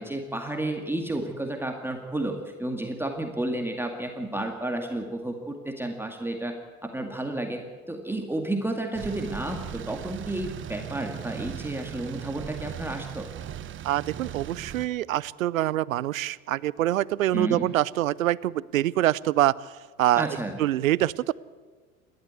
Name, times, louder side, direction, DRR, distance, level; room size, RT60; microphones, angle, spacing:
voice 1, 0.0-6.5 6.8-13.3 17.3-17.7 20.2-20.6, right 1 dB, 5° right, 3 dB, 2.1 m, -31 dB
sound 1, 8.9-14.9, right 10 dB, 30° right, 1.0 m, -38 dB
voice 2, 13.8-20.3 20.6-21.3, right 14 dB, 70° right, 23 dB, 0.7 m, -25 dB
28.5 x 12.5 x 8.3 m, 1.5 s
figure-of-eight pair, 80°, 43 cm